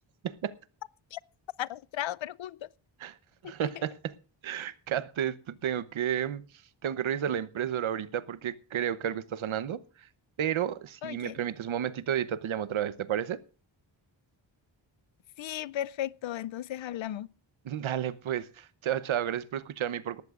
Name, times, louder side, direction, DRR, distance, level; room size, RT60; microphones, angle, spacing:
voice 1, 0.2-0.6 3.0-3.2 3.4-4.1 4.4-6.4 6.8-9.8 10.4-13.4 17.6-20.2, right 10 dB, 85° right, 0.9 m, -32 dB
voice 2, 1.6-2.7 3.4-3.8 11.0-11.4 15.4-17.3, left 12 dB, 75° left, 0.6 m, -36 dB
19.0 x 14.5 x 2.4 m
wide cardioid pair, 160°, 47 cm